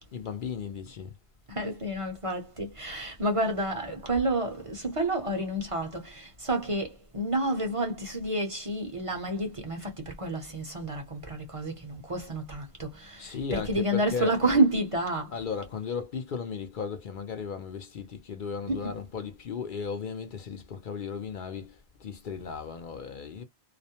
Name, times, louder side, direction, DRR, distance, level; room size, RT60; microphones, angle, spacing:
voice 1, 0.1-1.1 13.2-14.5 15.3-23.4, left 6 dB, 60° left, 0.6 m, -36 dB
voice 2, 1.5-15.3 18.7-18.9, right 1 dB, 35° right, 0.7 m, -29 dB
2.4 x 2.0 x 2.7 m
omnidirectional pair, 1.0 m